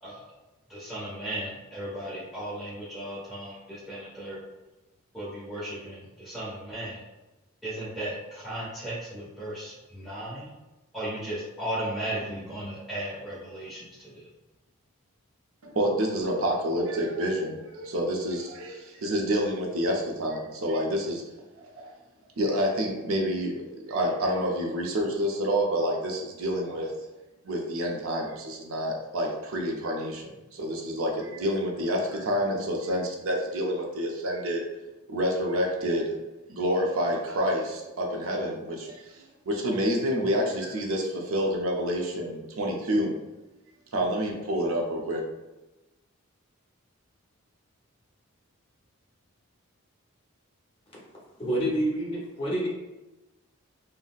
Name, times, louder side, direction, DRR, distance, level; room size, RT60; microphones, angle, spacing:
voice 1, 0.7-4.4 5.1-7.0 7.6-10.5 10.9-14.3, right 1 dB, ahead, -10 dB, 1.0 m, -36 dB
voice 2, 15.6-21.2 21.5-21.9 22.4-23.5 23.8-26.9 27.4-34.6 35.1-36.1 36.5-39.1 39.5-43.1 43.9-45.2, equal, 70° right, 0 dB, 0.6 m, -28 dB
voice 3, 51.4-52.7, right 1 dB, 25° left, -6 dB, 0.8 m, -27 dB
3.9 x 2.0 x 2.3 m, 1.0 s
head